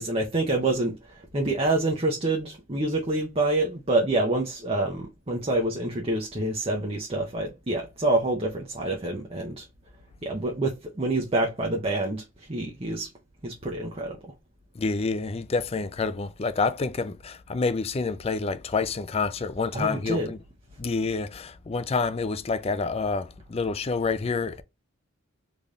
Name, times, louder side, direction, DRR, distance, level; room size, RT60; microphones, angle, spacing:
voice 1, 0.0-9.7 10.2-12.2 12.5-13.1 13.4-14.2 19.7-20.3, right 2 dB, 30° right, 0.7 m, -27 dB
voice 2, 14.8-20.4 20.8-24.6, left 4 dB, 30° left, 0.4 m, -28 dB
3.9 x 3.3 x 2.4 m
head